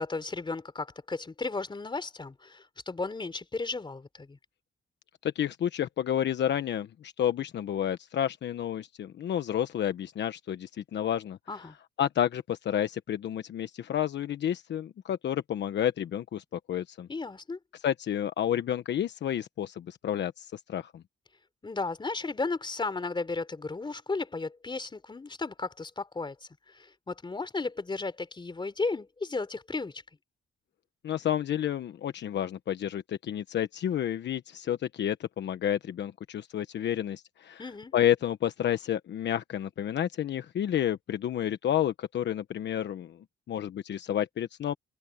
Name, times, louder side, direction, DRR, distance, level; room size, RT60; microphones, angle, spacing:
voice 1, 0.0-4.4 11.5-11.8 17.1-17.6 21.6-30.0 37.6-37.9, left 3 dB, 25° left, 3.6 m, -34 dB
voice 2, 5.2-11.4 12.0-17.1 17.8-21.0 31.0-37.6 37.9-43.2 43.5-44.7, left 10 dB, 65° left, 1.2 m, -30 dB
cardioid pair, 90°, 20 cm